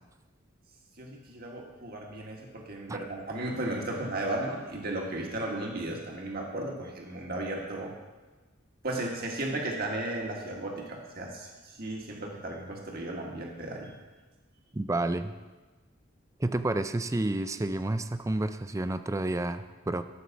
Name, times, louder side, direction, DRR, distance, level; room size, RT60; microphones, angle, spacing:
voice 1, 1.0-7.9 8.8-13.9, right 1 dB, 50° right, 0 dB, 1.6 m, -35 dB
voice 2, 14.7-15.3 16.4-20.0, right 2 dB, 15° right, 10 dB, 0.4 m, -30 dB
13.0 x 4.8 x 7.0 m, 1.2 s
head